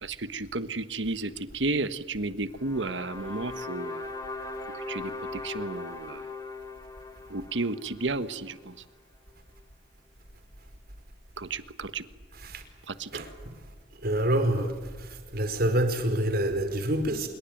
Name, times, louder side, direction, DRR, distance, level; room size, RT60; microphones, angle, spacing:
voice 1, 0.0-4.1 4.9-5.1 5.4-6.2 7.3-8.7 11.4-12.0 13.0-13.1, right 3 dB, 75° right, 1.4 m, -32 dB
sound 1, 2.6-8.8, left 3 dB, 20° left, 3.6 m, -39 dB
voice 2, 14.0-14.7 15.3-17.3, right 1 dB, 55° right, 4.8 m, -26 dB
26.0 x 22.5 x 9.2 m
head